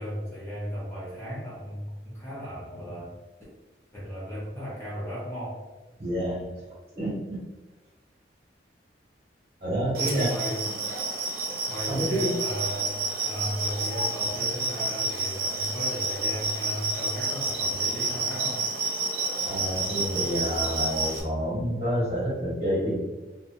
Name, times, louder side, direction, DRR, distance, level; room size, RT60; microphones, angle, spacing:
voice 1, 0.0-3.1 3.9-5.6 10.0-10.6 11.7-12.9 13.2-18.6, equal, 15° left, -8 dB, 0.6 m, -35 dB
voice 2, 6.0-7.4 9.6-10.4 10.6-10.8 11.9-12.3 19.4-22.9, equal, 35° right, -7 dB, 1.1 m, -29 dB
sound 1, 9.9-21.2, right 3 dB, 55° right, 0.5 m, -29 dB
2.7 x 2.1 x 2.6 m, 1.1 s
head